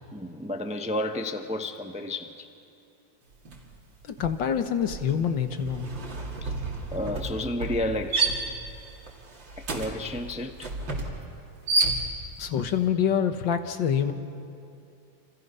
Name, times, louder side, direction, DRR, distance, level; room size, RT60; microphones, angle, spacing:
voice 1, 0.1-2.5 6.4-6.5 6.9-8.3 9.6-10.7, left 1 dB, 5° right, 6 dB, 0.6 m, -31 dB
sound 1, 3.5-3.7 4.0-12.5, right 3 dB, 85° right, 3.3 m, -31 dB
voice 2, 4.0-5.9 12.4-14.1, left 8 dB, 80° left, 8 dB, 2.0 m, -26 dB
29.0 x 27.5 x 5.6 m, 2.6 s
omnidirectional pair, 2.0 m